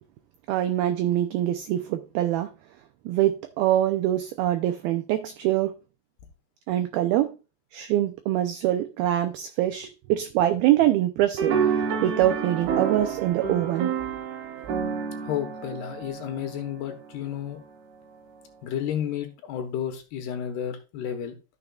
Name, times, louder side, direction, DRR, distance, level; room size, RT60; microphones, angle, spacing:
voice 1, 0.5-2.5 3.1-5.7 6.7-7.3 7.7-11.6 12.0-14.0, right 13 dB, 90° right, 2.1 m, -24 dB
sound 1, 11.4-16.9, right 6 dB, 70° right, 2.9 m, -29 dB
voice 2, 15.2-17.6 18.6-21.4, left 9 dB, 70° left, 3.1 m, -32 dB
13.0 x 6.8 x 2.4 m
omnidirectional pair, 5.1 m